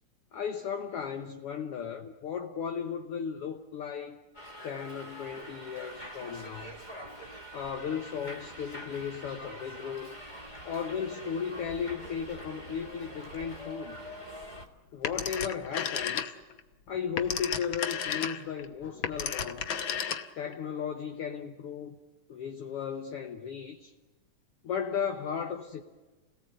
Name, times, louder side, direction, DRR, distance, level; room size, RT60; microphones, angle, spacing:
voice 1, 0.3-4.2 4.6-6.8 7.5-10.2 10.6-14.0 14.9-16.4 16.9-19.6 20.3-22.0 22.3-23.9 24.6-25.8, left 7 dB, 65° left, 1.6 m, -35 dB
Subway metro underground, 4.3-14.7, equal, 20° left, 1.3 m, -45 dB
Telephone, 15.0-16.6 16.9-20.5, left 8 dB, 90° left, 1.0 m, -33 dB
29.0 x 18.0 x 7.9 m
omnidirectional pair, 3.6 m